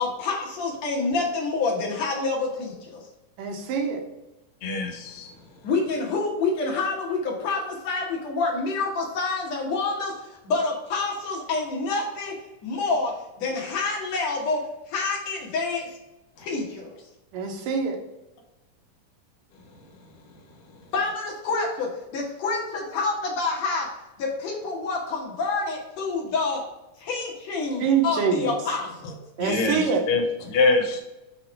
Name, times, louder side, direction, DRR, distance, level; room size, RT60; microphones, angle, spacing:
voice 1, 0.0-3.0 5.6-10.1 10.4-12.4 12.6-15.9 16.4-17.0 20.9-23.9 24.2-26.6 27.0-29.2, left 3 dB, 60° left, -1 dB, 2.1 m, -27 dB
voice 2, 3.4-4.0 17.3-18.0 27.8-28.5 29.4-30.0, right 6 dB, 85° right, 2 dB, 2.5 m, -24 dB
voice 3, 4.6-5.3 29.4-29.8 30.1-31.0, left 3 dB, 90° left, 3 dB, 2.6 m, -23 dB
6.7 x 3.0 x 4.8 m, 0.96 s
omnidirectional pair, 3.8 m